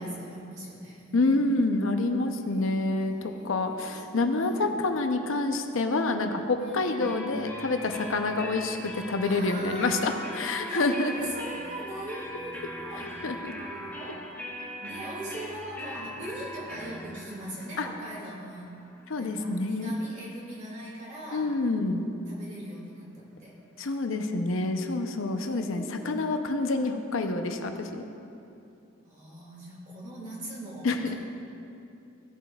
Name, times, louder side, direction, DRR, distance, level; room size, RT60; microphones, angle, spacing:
voice 1, 0.0-1.5 2.5-4.0 4.4-4.7 6.6-7.2 9.2-14.3 14.8-18.8 19.2-21.6 22.3-23.6 25.4-26.6 29.0-31.2, right 1 dB, 35° right, -4 dB, 2.0 m, -41 dB
voice 2, 1.1-11.3 13.2-13.5 17.8-17.9 19.1-19.9 21.3-22.0 23.8-28.0 30.8-31.2, left 2 dB, 80° left, 6 dB, 0.6 m, -27 dB
sound 1, 7.0-20.6, left 1 dB, 10° left, 0.8 m, -41 dB
15.5 x 7.7 x 2.3 m, 2.7 s
head